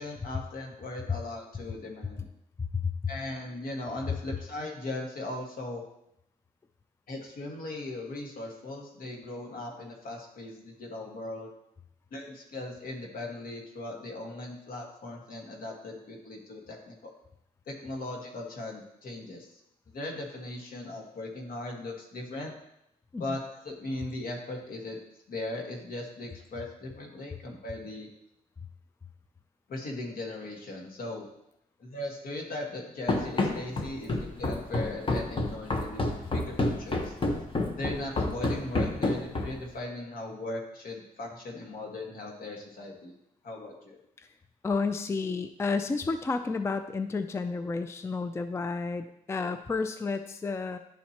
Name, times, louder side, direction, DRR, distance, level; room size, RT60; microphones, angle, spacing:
voice 1, 0.0-2.2 3.1-5.8 7.1-11.5 12.1-17.1 17.7-19.5 19.9-22.5 23.2-25.0 25.3-28.1 29.7-31.3 31.8-37.2 37.8-43.1 43.4-44.0, left 2 dB, 70° left, 0 dB, 1.6 m, -38 dB
voice 2, 2.6-3.1 23.1-23.2 44.2-44.3 44.6-50.8, left 4 dB, 15° left, 9 dB, 0.3 m, -31 dB
Run, 33.1-39.7, left 2 dB, 35° left, 1.0 m, -29 dB
11.0 x 4.2 x 2.9 m, 0.81 s
cardioid pair, 95°, 16 cm